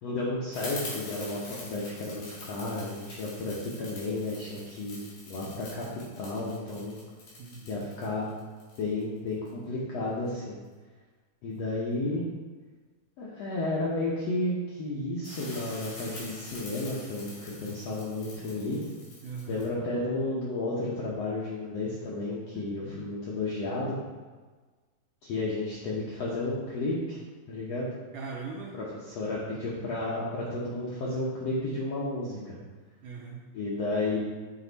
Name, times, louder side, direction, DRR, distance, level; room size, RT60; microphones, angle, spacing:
voice 1, 0.0-5.0 5.3-5.9 6.2-7.0 7.7-8.3 8.8-10.6 11.4-12.2 13.2-18.8 19.5-24.0 25.2-27.2 27.5-27.9 28.7-32.6 33.5-34.2, left 2 dB, 75° left, -6 dB, 1.5 m, -32 dB
sound 1, 0.5-9.5 15.2-19.7, left 2 dB, 60° left, 3.5 m, -45 dB
voice 2, 7.4-7.8 19.2-19.6 22.5-23.0 28.1-28.8 33.0-33.4, right 5 dB, 75° right, -1 dB, 1.9 m, -40 dB
7.8 x 4.7 x 4.0 m, 1.4 s
omnidirectional pair, 4.3 m